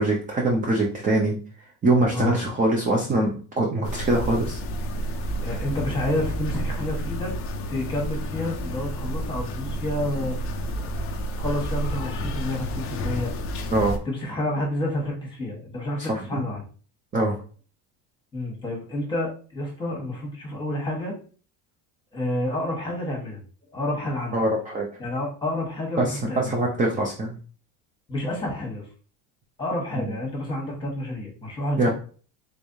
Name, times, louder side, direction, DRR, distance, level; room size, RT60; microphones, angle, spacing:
voice 1, 0.0-1.4 1.8-4.6 13.7-14.0 16.0-16.4 17.1-17.4 24.3-24.9 26.0-27.4 30.0-30.1 31.8-31.9, right 2 dB, 20° right, -1 dB, 0.5 m, -23 dB
sound 1, 3.8-14.0, equal, 30° left, 0.4 m, -30 dB
voice 2, 5.4-7.3 7.7-10.9 11.3-13.3 14.0-16.6 18.3-21.1 22.1-23.4 23.7-24.4 25.0-26.5 28.1-28.9 29.6-31.9, left 1 dB, 10° left, -1 dB, 1.3 m, -29 dB
3.6 x 3.3 x 2.7 m, 0.39 s
cardioid pair, 140°, 46 cm